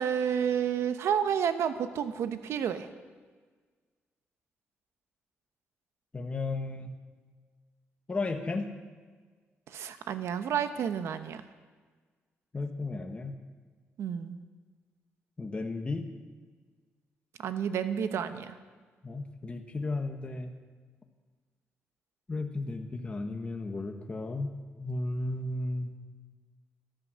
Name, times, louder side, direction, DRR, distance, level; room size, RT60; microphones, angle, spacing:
voice 1, 0.0-2.9 9.7-11.4 14.0-14.4 17.4-18.6, right 8 dB, 80° right, 10 dB, 0.9 m, -30 dB
voice 2, 6.1-6.9 8.1-8.7 12.5-13.3 15.4-16.1 19.0-20.5 22.3-24.5 24.8-25.9, left 2 dB, 25° left, 4 dB, 1.2 m, -34 dB
13.5 x 11.5 x 6.3 m, 1.5 s
cardioid pair, 115°, 5 cm